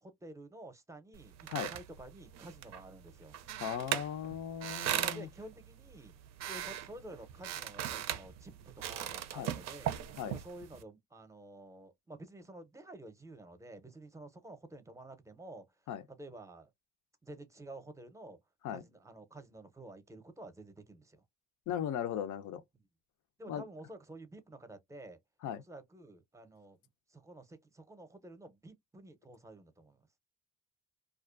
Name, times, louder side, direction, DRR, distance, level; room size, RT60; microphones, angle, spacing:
voice 1, 0.0-3.3 4.9-6.1 6.5-10.0 10.3-15.7 16.1-16.7 17.2-18.4 18.7-21.2 23.4-25.2 25.6-26.8 27.1-30.0, right 1 dB, 10° right, 0.6 m, -50 dB
sound 1, 1.1-10.8, right 11 dB, 65° right, 0.4 m, -40 dB
voice 2, 3.6-5.3 9.4-9.5 10.2-10.4 15.9-16.0 18.6-18.8 21.7-22.6 23.5-23.6 25.4-25.6, left 9 dB, 80° left, 0.5 m, -37 dB
2.4 x 2.1 x 2.4 m
cardioid pair, 90°, 30 cm